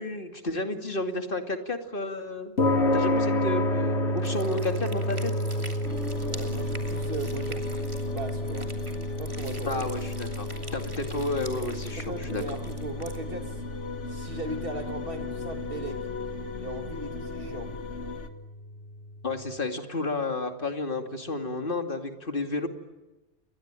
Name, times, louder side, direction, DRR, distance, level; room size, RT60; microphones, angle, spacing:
voice 1, 0.0-2.5 2.9-5.3 9.6-10.5 10.7-12.4 19.2-22.7, left 2 dB, 50° left, 5 dB, 2.7 m, -31 dB
sound 1, 2.6-19.1, left 1 dB, 70° left, 2.7 m, -31 dB
sound 2, 4.2-13.2, right 1 dB, 25° right, 2.9 m, -46 dB
sound 3, 5.8-18.3, left 3 dB, 90° left, 2.1 m, -38 dB
voice 2, 6.2-7.6 8.0-8.7 9.2-9.8 12.0-13.6 14.1-16.1 16.6-17.7, right 2 dB, 55° right, 5 dB, 3.1 m, -38 dB
29.0 x 22.5 x 9.0 m, 1.1 s
omnidirectional pair, 1.2 m